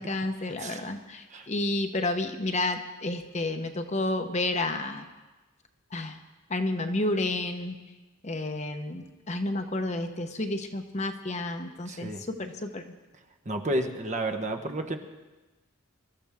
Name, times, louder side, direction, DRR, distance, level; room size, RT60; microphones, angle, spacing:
voice 1, 0.0-5.0 5.9-6.2 6.5-7.8 8.2-12.8, left 2 dB, 35° left, 6 dB, 0.9 m, -31 dB
voice 2, 11.8-12.2 13.4-15.0, right 1 dB, 35° right, 6 dB, 1.0 m, -31 dB
23.5 x 13.5 x 3.6 m, 1.2 s
head